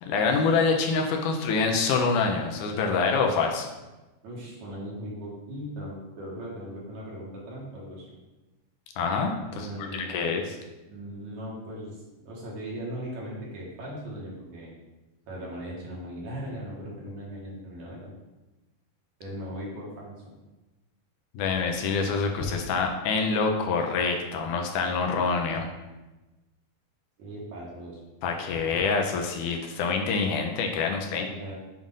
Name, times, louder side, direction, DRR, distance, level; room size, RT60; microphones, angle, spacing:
voice 1, 0.1-3.7 9.0-10.6 21.3-25.7 28.2-31.2, left 4 dB, 80° left, 2 dB, 2.1 m, -26 dB
voice 2, 4.2-8.2 9.5-10.4 10.9-14.7 15.3-18.1 19.2-20.4 27.2-28.0 31.1-31.6, equal, 65° right, -5 dB, 2.6 m, -38 dB
7.4 x 2.5 x 5.3 m, 1.1 s
omnidirectional pair, 3.7 m